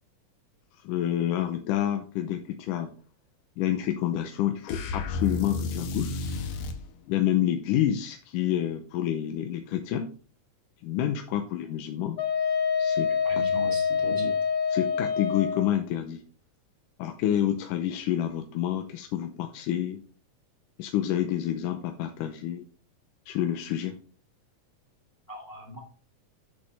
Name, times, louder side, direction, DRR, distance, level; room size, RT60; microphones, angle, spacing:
voice 1, 0.8-2.9 3.6-6.2 7.1-10.1 10.8-12.2 12.8-13.4 14.7-16.2 17.0-20.0 20.8-22.6 23.3-24.0, left 11 dB, 90° left, 5 dB, 2.3 m, -28 dB
sound 1, 4.7-6.8, left 3 dB, 65° left, 1.8 m, -32 dB
Wind instrument woodwind instrument, 12.2-15.7, left 6 dB, 40° left, 3.2 m, -26 dB
voice 2, 13.2-14.3 25.3-25.8, right 1 dB, 10° left, 0 dB, 1.1 m, -38 dB
8.4 x 6.2 x 4.3 m, 0.41 s
omnidirectional pair, 3.7 m